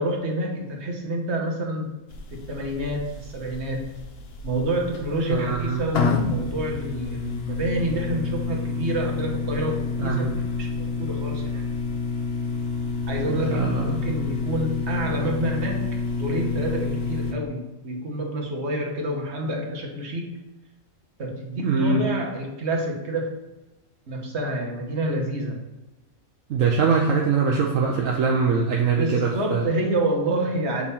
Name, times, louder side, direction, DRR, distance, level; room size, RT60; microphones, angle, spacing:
voice 1, 0.0-1.9 2.3-3.9 4.4-11.7 13.1-20.4 21.2-23.4 24.1-25.6 29.0-30.9, right 1 dB, 55° right, 0 dB, 1.4 m, -28 dB
sound 1, 2.1-17.3, left 4 dB, 55° left, 0.9 m, -29 dB
voice 2, 5.3-5.8 10.0-10.3 13.3-14.0 21.6-22.0 26.5-29.6, right 5 dB, 75° right, -1 dB, 1.1 m, -23 dB
7.1 x 3.7 x 4.2 m, 1.0 s
omnidirectional pair, 1.4 m